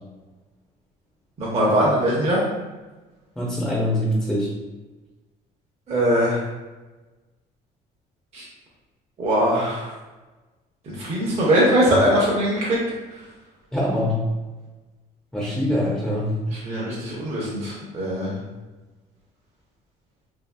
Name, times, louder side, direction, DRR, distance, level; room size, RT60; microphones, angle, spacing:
voice 1, 1.4-2.4 5.9-6.4 8.3-8.5 9.2-9.9 10.8-12.8 16.5-18.4, equal, 35° right, -6 dB, 0.7 m, -21 dB
voice 2, 3.4-4.5 13.7-14.2 15.3-16.4, left 1 dB, 5° left, -6 dB, 0.6 m, -23 dB
2.7 x 2.7 x 2.2 m, 1.2 s
cardioid pair, 110°, 17 cm